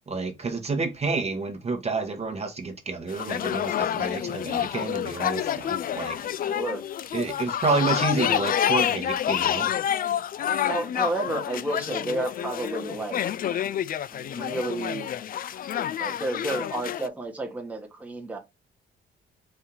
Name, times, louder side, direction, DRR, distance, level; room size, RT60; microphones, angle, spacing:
voice 1, 0.1-6.2 7.1-9.7, right 3 dB, 30° right, 1.1 m, -29 dB
sound 1, 3.1-17.1, left 10 dB, 45° left, 0.4 m, -28 dB
voice 2, 6.4-6.8 10.7-13.2 14.1-15.1 16.0-18.4, right 2 dB, 5° right, 1.1 m, -31 dB
4.4 x 2.7 x 3.7 m
cardioid pair, 90°, 20 cm